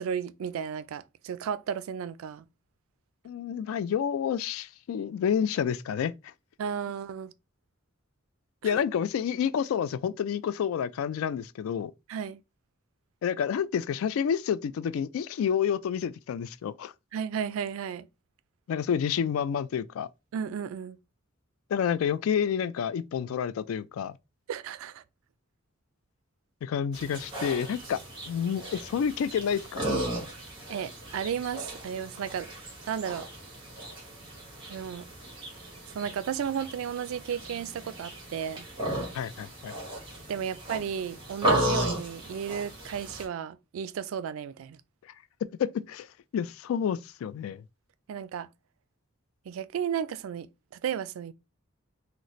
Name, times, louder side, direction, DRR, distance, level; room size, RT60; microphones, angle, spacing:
voice 1, 0.0-2.5 6.6-7.3 8.6-8.8 12.1-12.4 17.1-18.1 20.3-21.0 24.5-25.0 30.7-32.5 32.9-33.3 34.7-35.1 35.9-38.7 40.3-44.8 48.1-48.5 49.5-51.3, right 8 dB, 90° right, 0.3 m, -34 dB
voice 2, 3.2-6.3 8.6-11.9 13.2-16.9 18.7-20.1 21.7-24.2 26.6-29.9 39.1-39.7 45.6-46.1 46.3-47.6, left 8 dB, 90° left, 0.3 m, -29 dB
sound 1, 26.9-43.2, right 1 dB, 25° right, 1.3 m, -35 dB
4.0 x 2.0 x 3.0 m
head